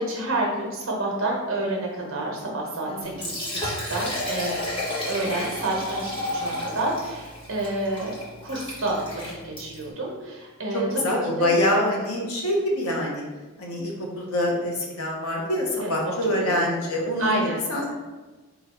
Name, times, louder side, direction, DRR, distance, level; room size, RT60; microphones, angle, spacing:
voice 1, 0.0-3.3 3.6-4.5 5.1-8.1 8.4-11.0 11.4-11.5 15.8-16.8 17.2-17.6, right 2 dB, 65° right, -2 dB, 1.0 m, -29 dB
Liquid, 3.0-9.9, left 1 dB, 25° left, 1.0 m, -32 dB
voice 2, 10.7-13.2 13.6-17.4 17.7-17.9, left 1 dB, 80° left, -1 dB, 0.9 m, -25 dB
3.8 x 2.3 x 4.3 m, 1.2 s
head